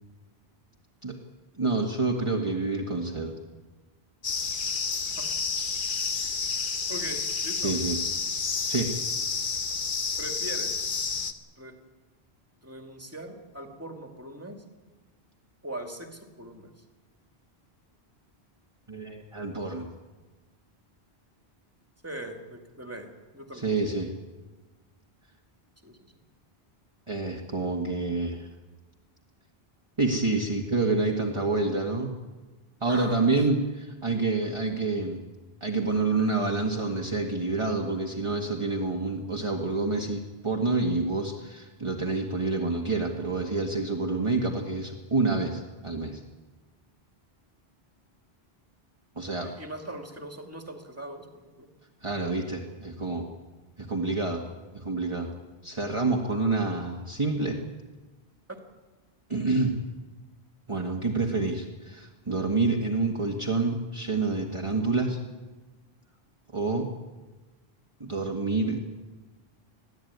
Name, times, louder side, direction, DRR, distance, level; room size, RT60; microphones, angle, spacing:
voice 1, 1.6-3.3 7.6-8.0 8.7-8.9 18.9-19.9 23.5-24.1 27.1-28.5 30.0-32.1 32.8-35.2 35.6-46.2 49.2-49.5 52.0-53.3 53.9-54.4 54.7-55.3 55.6-57.6 59.3-59.8 60.7-65.2 66.5-66.9 68.0-68.9, right 3 dB, 30° right, 1 dB, 1.7 m, -28 dB
sound 1, 4.2-11.3, left 5 dB, 55° left, 1.3 m, -30 dB
voice 2, 6.9-7.7 10.2-10.7 11.6-11.8 12.6-14.6 15.6-16.7 22.0-23.7 25.8-26.0 32.8-33.3 49.4-51.3 51.6-51.7 58.5-58.6, right 1 dB, 15° right, 4 dB, 2.4 m, -40 dB
21.5 x 15.0 x 9.4 m, 1.3 s
omnidirectional pair, 1.1 m